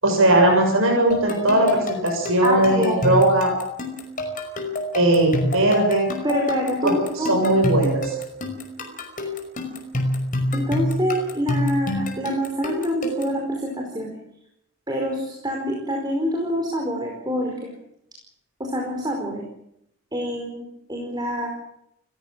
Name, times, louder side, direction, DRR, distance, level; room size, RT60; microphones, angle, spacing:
voice 1, 0.0-3.5 4.9-6.1 6.8-6.9 7.3-8.1, right 1 dB, 70° right, 1 dB, 7.2 m, -18 dB
sound 1, 1.1-13.4, left 2 dB, 40° left, 5.5 m, -28 dB
voice 2, 2.4-3.2 6.2-7.4 10.5-14.2 14.9-17.7 18.6-19.4 20.1-20.6 20.9-21.5, equal, 20° right, 1 dB, 4.9 m, -26 dB
30.0 x 16.0 x 7.6 m, 0.76 s
head